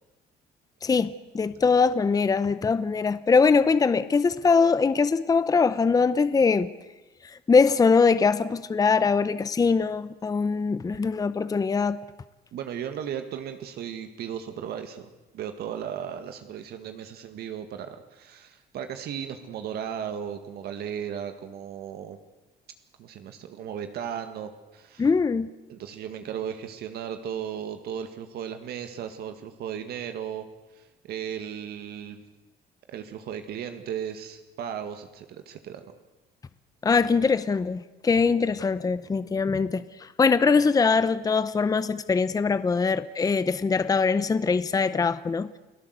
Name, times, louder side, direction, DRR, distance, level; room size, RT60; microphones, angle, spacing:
voice 1, 0.8-6.7 7.2-12.0 25.0-25.5 36.8-45.5, left 5 dB, 20° left, 0.7 m, -22 dB
voice 2, 12.5-15.1 15.3-22.2 23.0-25.1 25.7-30.5 30.7-32.2 32.9-35.8, right 8 dB, 70° right, 1.9 m, -36 dB
29.5 x 17.5 x 8.1 m
cardioid pair, 110°, 17 cm